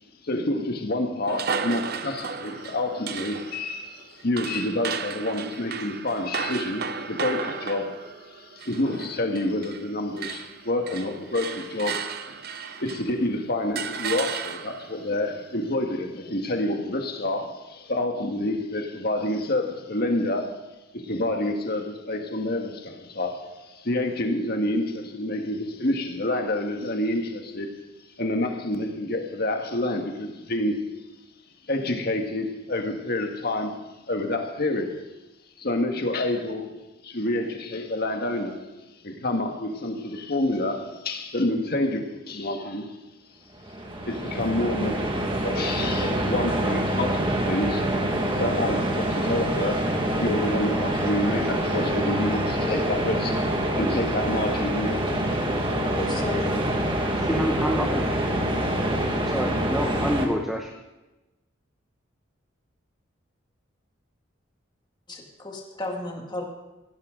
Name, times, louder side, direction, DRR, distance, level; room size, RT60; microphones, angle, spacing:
voice 1, 0.2-8.0 8.4-20.6 20.9-27.8 28.2-30.9 31.7-35.0 35.6-36.7 37.0-38.7 39.0-43.0 44.1-47.9 48.4-53.5 53.8-55.2, left 1 dB, 50° left, 4 dB, 1.7 m, -28 dB
sound 1, 1.3-9.9 10.2-13.2 13.8-15.0, right 6 dB, 50° right, 0.8 m, -34 dB
sound 2, 43.6-60.3, right 1 dB, 25° right, 1.8 m, -26 dB
voice 2, 55.9-56.6 57.3-57.5 65.1-66.4, left 1 dB, 20° left, 0 dB, 2.2 m, -34 dB
voice 3, 57.2-58.1 59.2-60.7, equal, ahead, 1 dB, 1.0 m, -27 dB
17.5 x 17.0 x 3.9 m, 1.1 s
head